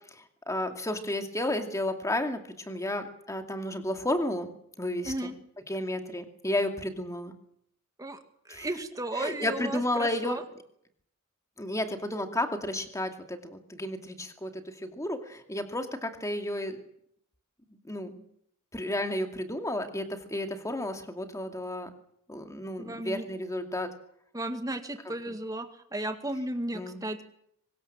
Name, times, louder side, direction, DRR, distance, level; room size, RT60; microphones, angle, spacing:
voice 1, 0.1-5.3 5.7-7.3 8.5-8.7 9.1-10.4 11.6-16.8 17.7-18.2 18.7-21.9 22.3-23.9 25.3-25.4 26.7-27.0, left 1 dB, 15° left, 5 dB, 2.5 m, -32 dB
voice 2, 5.0-5.4 8.0-8.2 8.5-10.4 22.8-23.2 24.3-27.2, right 1 dB, 15° right, 7 dB, 2.0 m, -34 dB
24.0 x 20.5 x 7.5 m, 0.71 s
head